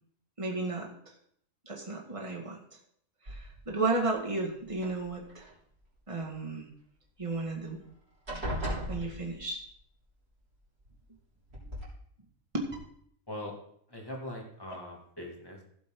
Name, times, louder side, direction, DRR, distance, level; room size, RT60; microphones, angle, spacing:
voice 1, 0.4-0.9 1.7-2.6 3.3-5.5 6.1-6.7 7.2-7.8 8.9-9.6 12.5-12.6, right 3 dB, 25° right, 0 dB, 2.1 m, -33 dB
sound 1, 3.3-3.8 4.7-5.5 7.3-7.4 7.7-7.9 8.3-9.7 10.9-11.0 11.5-11.9, equal, 50° right, 4.3 m, -37 dB
voice 2, 13.9-15.6, left 1 dB, 15° left, -1 dB, 2.4 m, -41 dB
16.0 x 7.6 x 3.9 m, 0.65 s
omnidirectional pair, 1.4 m